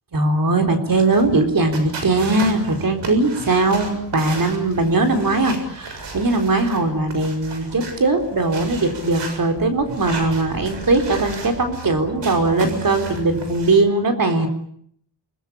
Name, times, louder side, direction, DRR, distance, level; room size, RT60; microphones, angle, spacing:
voice 1, 0.1-14.5, right 2 dB, 50° right, 6 dB, 4.1 m, -20 dB
sound 1, 0.9-13.8, right 3 dB, 90° right, 7.2 m, -34 dB
29.5 x 20.0 x 8.5 m, 0.66 s
wide cardioid pair, 95°, 42 cm